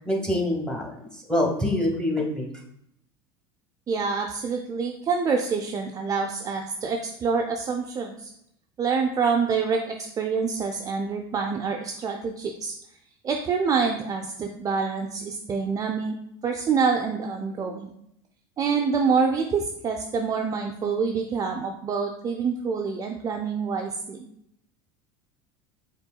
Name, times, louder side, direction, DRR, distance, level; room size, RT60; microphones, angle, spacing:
voice 1, 0.0-2.5, left 1 dB, 5° left, -1 dB, 1.2 m, -25 dB
voice 2, 3.9-8.3 8.8-12.7 13.2-16.2 16.4-17.9 18.6-24.2, right 5 dB, 25° right, 2 dB, 0.4 m, -26 dB
5.3 x 3.9 x 2.2 m, 0.74 s
supercardioid pair, 100°, 13 cm